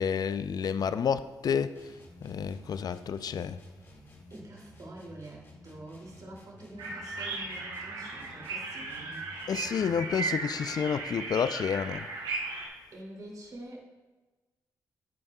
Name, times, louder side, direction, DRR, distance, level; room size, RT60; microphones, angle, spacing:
voice 1, 0.0-1.7 2.2-3.6 9.5-12.1, left 7 dB, 60° left, 0.4 m, -30 dB
sound 1, 1.7-10.2, equal, 30° left, 2.1 m, -53 dB
voice 2, 4.3-9.3 12.9-13.8, right 1 dB, 50° right, 2.6 m, -46 dB
sound 2, 6.8-12.7, right 3 dB, 85° right, 1.7 m, -36 dB
10.5 x 8.6 x 2.3 m
supercardioid pair, 55°, 8 cm